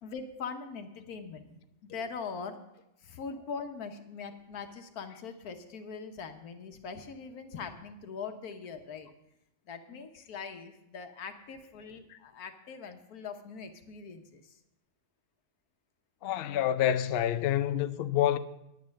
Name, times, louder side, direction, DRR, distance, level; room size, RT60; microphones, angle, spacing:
voice 1, 0.0-2.6 3.0-9.1 9.7-14.5, left 5 dB, 80° left, 1.5 m, -42 dB
voice 2, 16.2-18.4, left 11 dB, 65° left, 0.6 m, -27 dB
9.3 x 9.3 x 6.4 m
omnidirectional pair, 1.6 m